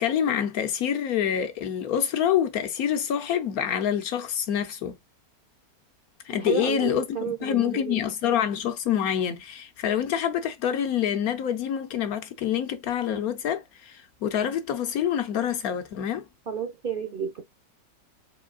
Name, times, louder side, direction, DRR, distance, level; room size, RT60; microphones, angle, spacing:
voice 1, 0.0-4.9 6.2-16.3, left 9 dB, 65° left, 1.0 m, -26 dB
voice 2, 6.3-8.0 16.5-17.4, right 7 dB, 55° right, 0.5 m, -31 dB
4.9 x 4.3 x 2.2 m
omnidirectional pair, 1.9 m